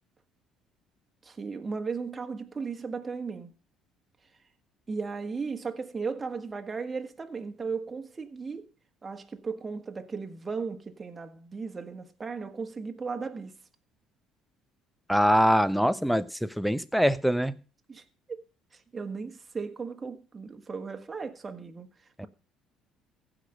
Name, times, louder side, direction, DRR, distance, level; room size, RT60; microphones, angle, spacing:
voice 1, 1.2-3.5 4.9-8.7 9.0-13.5 17.9-18.4 18.9-21.9, right 5 dB, 25° right, 1.5 m, -36 dB
voice 2, 15.1-17.6 22.2-22.3, equal, ahead, 0.8 m, -24 dB
15.5 x 5.2 x 6.4 m
supercardioid pair, 70°, 0 cm